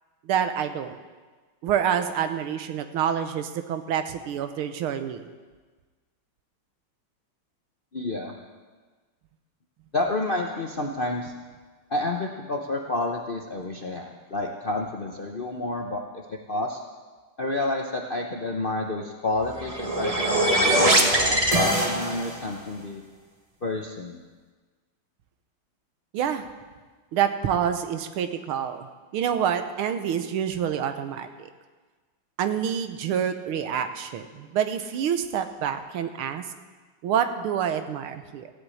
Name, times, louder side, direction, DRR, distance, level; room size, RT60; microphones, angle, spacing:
voice 1, 0.3-0.9 1.6-5.3 26.1-26.5 27.1-28.9 29.1-31.5 32.4-36.4 37.0-38.5, right 8 dB, 85° right, 9 dB, 1.8 m, -27 dB
voice 2, 7.9-8.3 9.9-11.3 11.9-16.8 17.4-23.0 23.6-24.2, left 2 dB, 50° left, 1 dB, 0.6 m, -30 dB
sound 1, 19.4-22.5, right 1 dB, 20° right, 1.2 m, -22 dB
15.5 x 8.1 x 8.5 m, 1.4 s
omnidirectional pair, 2.3 m